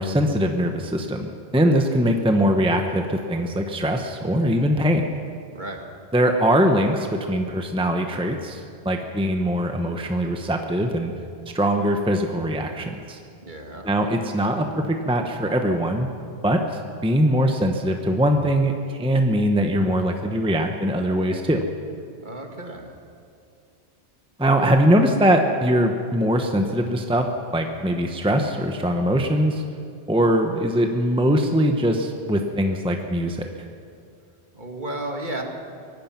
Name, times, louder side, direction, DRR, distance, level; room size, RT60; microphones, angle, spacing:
voice 1, 0.0-5.0 6.1-11.1 11.5-13.2 13.8-16.1 16.4-21.6 24.4-27.3 27.5-29.6 30.1-33.5, equal, 5° right, 4 dB, 1.0 m, -22 dB
voice 2, 5.5-5.8 13.4-13.9 22.2-23.0 34.5-35.4, right 1 dB, 45° right, 2 dB, 2.2 m, -33 dB
24.0 x 18.0 x 6.0 m, 2.4 s
omnidirectional pair, 1.1 m